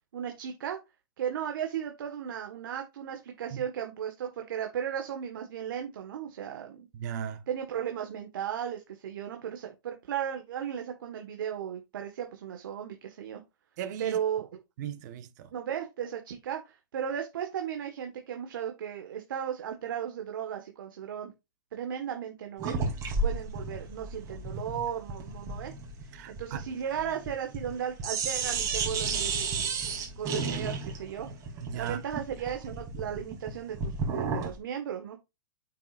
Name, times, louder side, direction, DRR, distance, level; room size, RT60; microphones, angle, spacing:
voice 1, 0.1-0.8 1.2-6.9 7.5-13.4 14.0-14.5 15.5-21.3 21.7-22.8 23.2-25.7 26.0-29.3 30.2-31.3 31.7-35.2, right 9 dB, 70° right, 1.5 m, -35 dB
voice 2, 6.9-7.4 13.8-14.2 14.8-15.5 26.1-26.7 31.6-32.0, right 9 dB, 55° right, 1.2 m, -37 dB
sound 1, 22.6-27.7 28.0-34.6, right 4 dB, 30° right, 3.0 m, -33 dB
8.6 x 6.2 x 2.5 m
hypercardioid pair, 135°, 12 cm